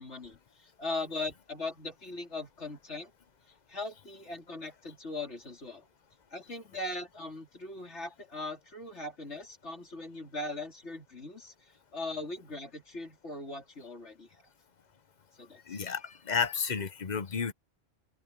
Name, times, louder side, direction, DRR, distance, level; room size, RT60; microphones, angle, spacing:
voice 1, 0.0-3.1 3.7-5.9 6.3-14.4 15.4-15.6, left 2 dB, 70° left, 3.9 m, -40 dB
voice 2, 15.7-17.5, left 6 dB, 45° left, 0.8 m, -32 dB
open air
omnidirectional pair, 1.2 m